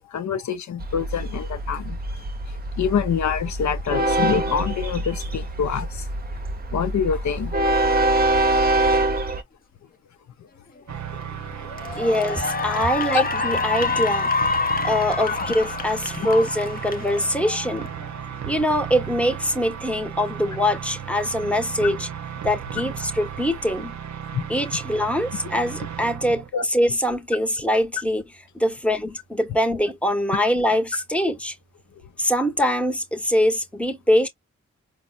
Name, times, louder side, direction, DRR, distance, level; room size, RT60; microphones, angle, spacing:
voice 1, 0.0-2.0 2.8-6.0 6.7-7.7 11.1-11.2 11.6-12.0 13.1-13.3 15.3-15.4 16.2-16.3 24.3-24.5 26.5-26.6, left 7 dB, 70° left, 0.6 m, -26 dB
Train, 0.8-9.4, right 2 dB, 30° right, 0.7 m, -24 dB
Cheering / Applause, 10.9-11.2 11.7-18.2, left 4 dB, 30° left, 0.6 m, -27 dB
sound 1, 10.9-26.5, right 8 dB, 70° right, 0.6 m, -35 dB
voice 2, 12.0-14.3 14.8-17.9 18.5-22.1 22.4-24.0 24.5-28.2 28.5-31.5 32.2-34.3, equal, 5° left, 0.8 m, -23 dB
4.1 x 2.1 x 2.3 m
cardioid pair, 40°, 29 cm